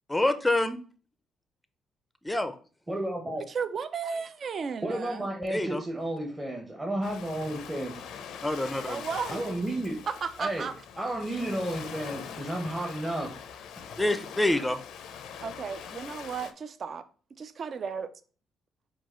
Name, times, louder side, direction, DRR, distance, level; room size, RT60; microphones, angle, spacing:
voice 1, 0.1-0.8 2.2-2.5 5.5-5.8 8.4-9.0 14.0-14.8, left 1 dB, 10° left, 0.5 m, -26 dB
voice 2, 2.9-3.4 4.8-8.0 9.3-10.0 10.4-10.7 11.0-13.3, right 1 dB, 15° right, 0.8 m, -32 dB
voice 3, 3.5-5.3 8.8-9.4 10.1-10.7 15.4-17.1 17.4-18.1, right 6 dB, 50° right, 0.4 m, -34 dB
Ocean, 7.0-16.5, left 7 dB, 80° left, 0.5 m, -43 dB
4.6 x 2.4 x 4.3 m
cardioid pair, 90°, 0 cm